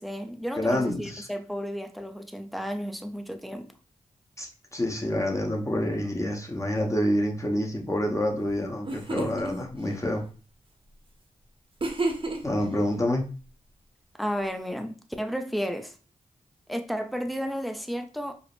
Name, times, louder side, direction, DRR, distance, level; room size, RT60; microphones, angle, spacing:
voice 1, 0.0-3.7 14.1-16.0 16.7-18.3, equal, ahead, 0.5 m, -33 dB
voice 2, 0.6-1.3 4.4-10.2 12.4-13.3, left 1 dB, 20° left, 1.0 m, -27 dB
sound 1, 8.5-8.6 8.8-9.5 11.8-12.6, right 2 dB, 35° right, 0.8 m, -30 dB
4.8 x 2.0 x 2.5 m
cardioid pair, 45°, 14 cm